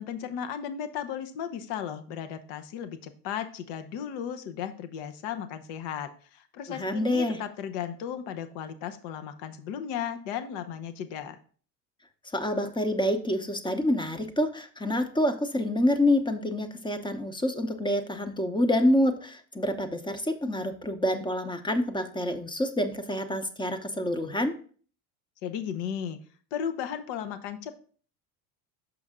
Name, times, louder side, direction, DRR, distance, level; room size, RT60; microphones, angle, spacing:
voice 1, 0.0-11.4 25.4-26.2 26.5-27.8, left 8 dB, 70° left, 9 dB, 0.9 m, -35 dB
voice 2, 6.7-7.4 12.3-24.6, left 1 dB, 10° left, 9 dB, 0.7 m, -27 dB
6.3 x 5.4 x 3.6 m, 0.43 s
supercardioid pair, 95°, 43 cm